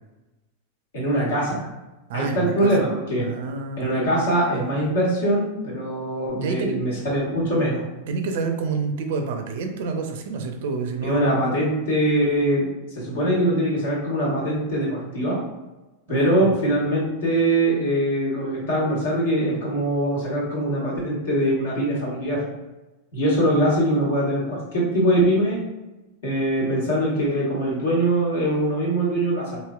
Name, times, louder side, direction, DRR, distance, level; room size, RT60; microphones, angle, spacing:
voice 1, 0.9-1.7 2.1-3.3 3.8-7.8 11.0-12.7 12.9-15.4 16.1-22.4 23.1-25.6 26.2-29.6, right 1 dB, 70° left, -5 dB, 1.3 m, -22 dB
voice 2, 2.1-2.7 3.2-3.9 6.4-6.8 8.1-11.2 16.1-16.5, right 4 dB, 65° right, 5 dB, 0.4 m, -28 dB
3.0 x 2.7 x 2.3 m, 1.1 s
hypercardioid pair, 95°, 0 cm